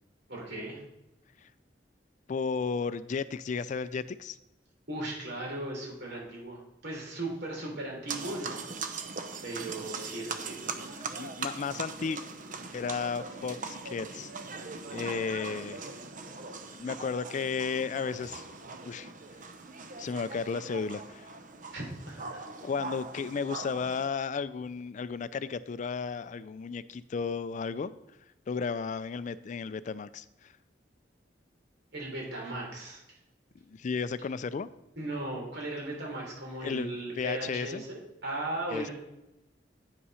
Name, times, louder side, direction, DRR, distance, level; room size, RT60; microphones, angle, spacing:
voice 1, 0.3-0.8 4.9-8.6 9.4-10.9 21.7-22.4 31.9-33.0 35.0-38.9, right 1 dB, 65° right, -2 dB, 3.4 m, -37 dB
voice 2, 2.3-4.4 11.2-12.2 12.7-14.3 14.9-15.9 16.7-18.5 18.8-19.1 20.0-21.3 22.6-27.9 28.5-30.5 33.7-34.7 36.6-37.8 38.7-38.9, left 5 dB, 45° left, 15 dB, 0.3 m, -34 dB
sound 1, 8.1-24.1, right 4 dB, 45° right, 0.7 m, -41 dB
9.3 x 5.7 x 5.5 m, 0.88 s
head